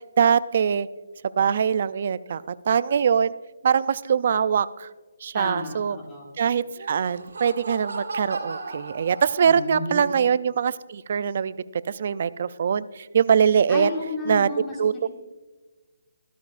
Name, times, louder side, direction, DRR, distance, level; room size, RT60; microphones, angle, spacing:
voice 1, 0.2-0.9 1.4-3.3 3.6-4.9 5.2-6.0 6.4-11.5 11.9-13.9 14.2-15.1, right 7 dB, 45° right, 17 dB, 0.4 m, -23 dB
voice 2, 5.3-6.3 9.4-10.1 13.7-15.1, left 2 dB, 10° left, -2 dB, 1.7 m, -32 dB
Laughter, 6.6-9.8, right 3 dB, 75° right, 2.4 m, -36 dB
14.0 x 13.0 x 2.5 m, 1.3 s
hypercardioid pair, 165°, 0 cm